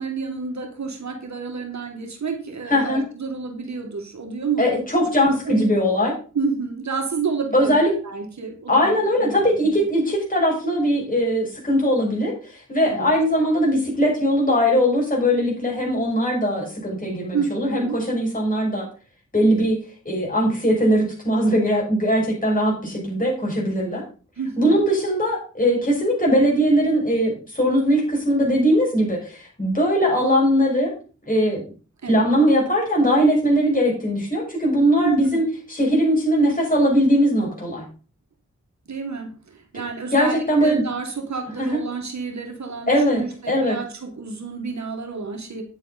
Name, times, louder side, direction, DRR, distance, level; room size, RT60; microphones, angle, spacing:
voice 1, 0.0-5.7 6.3-9.8 12.8-13.1 17.3-18.0 24.4-24.8 32.0-32.3 35.0-35.5 38.9-45.6, right 5 dB, 65° right, 4 dB, 2.1 m, -30 dB
voice 2, 2.7-3.0 4.6-6.1 7.5-7.9 8.7-18.9 19.3-19.8 20.0-24.0 24.6-30.9 31.3-31.6 32.1-37.8 40.1-40.8 41.6-41.8 42.9-43.7, equal, 30° left, -2 dB, 6.6 m, -20 dB
9.6 x 8.1 x 4.3 m, 0.38 s
cardioid pair, 55°, 30 cm